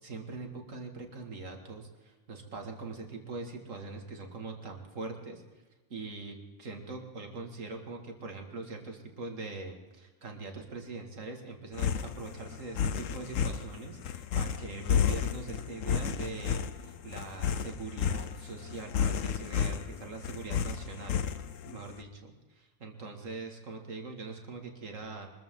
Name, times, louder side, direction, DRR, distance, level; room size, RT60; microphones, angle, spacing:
voice 1, 0.0-5.4 5.9-21.2 21.7-25.3, right 3 dB, 75° right, 3 dB, 2.5 m, -42 dB
sound 1, 11.7-21.8, left 7 dB, 75° left, 1.1 m, -31 dB
24.0 x 14.5 x 3.8 m, 1.2 s
omnidirectional pair, 1.3 m